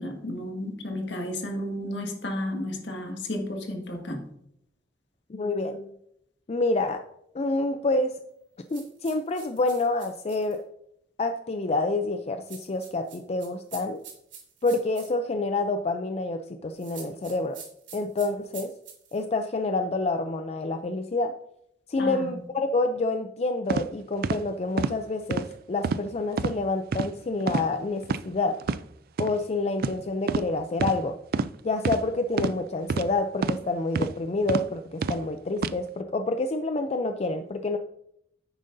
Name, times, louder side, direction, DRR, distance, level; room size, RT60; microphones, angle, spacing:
voice 1, 0.0-4.3 22.0-22.3, left 1 dB, 70° left, 3 dB, 1.8 m, -32 dB
voice 2, 5.3-6.0 6.5-7.0 7.3-8.2 8.7-10.6 11.2-14.0 14.6-17.6 17.9-18.7 19.1-21.3 21.9-28.6 29.2-31.2 31.6-37.8, left 2 dB, 35° left, 7 dB, 0.4 m, -28 dB
sound 1, 8.7-10.6 12.5-15.1 16.8-19.2, right 7 dB, 75° right, 3.6 m, -46 dB
sound 2, 23.7-23.8 24.2-24.4 24.8-24.9 25.3-25.5 25.8-26.0 26.4-26.5 26.9-27.1 27.5-27.7 28.0-28.2 28.6-28.8 29.2-29.3 29.8-30.0 30.3-30.5 30.8-31.0 31.3-31.5 31.8-32.0 32.4-32.5 32.9-33.1 33.4-33.6 34.0-34.1 34.5-34.6 35.0-35.2 35.6-35.7, right 4 dB, 55° right, 0.4 m, -27 dB
10.5 x 8.9 x 2.6 m, 0.76 s
head